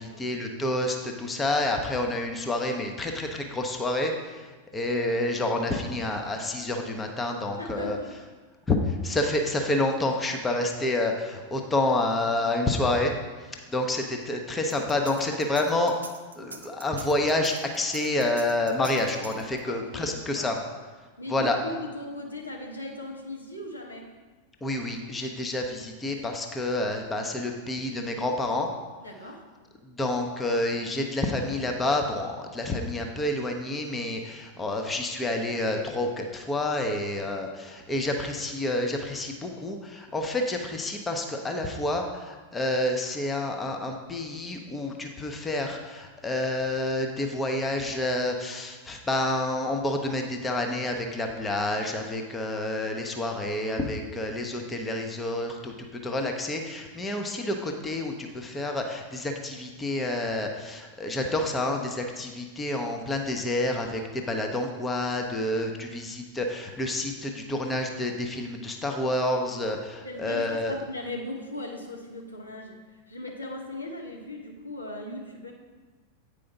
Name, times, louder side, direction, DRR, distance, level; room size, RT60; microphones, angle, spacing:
voice 1, 0.0-8.0 8.7-13.1 13.4-16.0 16.4-20.6 21.3-21.6 24.6-28.7 29.8-70.7, left 1 dB, 15° left, 3 dB, 0.7 m, -29 dB
voice 2, 7.6-8.1 19.7-20.5 21.2-24.1 29.0-29.5 70.0-75.5, left 1 dB, 80° left, 0 dB, 1.0 m, -38 dB
sound 1, 14.7-19.8, right 4 dB, 75° right, 0.5 m, -43 dB
8.5 x 5.0 x 4.0 m, 1.3 s
figure-of-eight pair, 90°, 0 cm